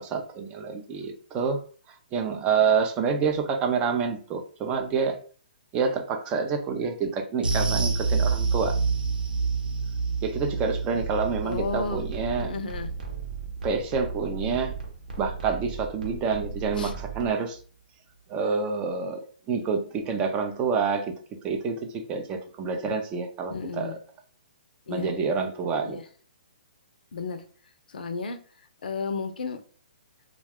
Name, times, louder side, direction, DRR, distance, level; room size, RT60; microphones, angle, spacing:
voice 1, 0.0-1.6 2.1-5.2 5.7-8.8 10.2-12.5 13.6-14.7 15.2-17.6 18.3-19.2 19.5-21.1 21.4-23.9 24.9-26.0, right 5 dB, 20° right, 5 dB, 0.4 m, -27 dB
sound 1, 7.4-16.1 16.4-16.6 17.0-17.1, right 4 dB, 90° right, 0.6 m, -29 dB
sound 2, 11.0-17.3, right 4 dB, 70° right, 0.9 m, -37 dB
voice 2, 11.4-12.0 12.4-12.9 16.8-16.9 23.5-24.0 24.9-25.1 25.8-26.0 27.1-27.4 27.9-28.4 28.8-29.6, left 4 dB, 75° left, 9 dB, 0.5 m, -33 dB
2.3 x 2.2 x 3.4 m, 0.42 s
hypercardioid pair, 145°, 5 cm